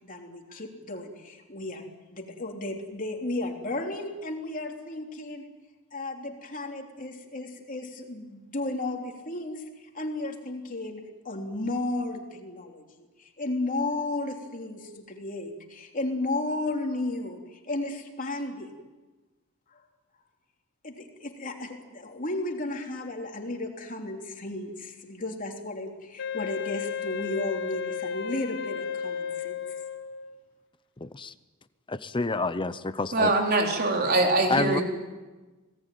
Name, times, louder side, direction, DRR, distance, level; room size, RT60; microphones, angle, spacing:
voice 1, 0.0-5.5 5.9-18.8 19.7-19.8 20.8-29.6, left 2 dB, 40° left, 2 dB, 3.3 m, -34 dB
Wind instrument woodwind instrument, 26.2-30.4, left 7 dB, 55° left, 1.2 m, -34 dB
voice 2, 31.0-31.3 31.9-33.3 34.5-34.8, left 3 dB, 25° left, 12 dB, 0.7 m, -28 dB
voice 3, 33.1-34.8, right 2 dB, 45° right, 2 dB, 4.1 m, -23 dB
27.0 x 18.5 x 9.3 m, 1.2 s
head